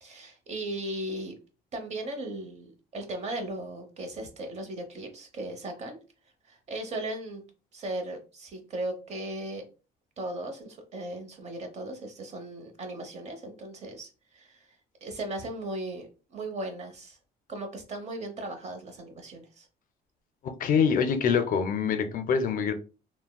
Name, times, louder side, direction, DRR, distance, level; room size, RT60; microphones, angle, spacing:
voice 1, 0.0-1.4 1.7-6.0 6.4-7.4 7.7-9.6 10.2-14.7 15.0-17.2 17.5-19.7, right 1 dB, 40° right, 0.8 m, -37 dB
voice 2, 20.4-22.7, left 6 dB, 55° left, 0.4 m, -25 dB
3.4 x 2.1 x 2.2 m
cardioid pair, 110°, 17 cm